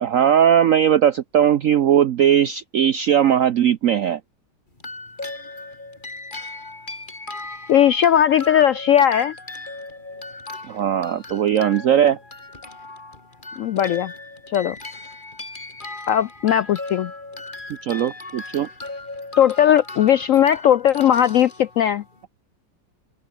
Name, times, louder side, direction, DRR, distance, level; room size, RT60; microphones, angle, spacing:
voice 1, 0.0-4.2 10.7-12.2 17.8-18.7, right 9 dB, 60° right, 0.9 m, -18 dB
sound 1, 4.8-22.2, left 2 dB, 25° left, 2.9 m, -37 dB
voice 2, 7.7-9.3 13.6-14.1 14.5-14.8 16.1-17.1 19.4-22.0, left 10 dB, 80° left, 0.7 m, -17 dB
open air
omnidirectional pair, 2.0 m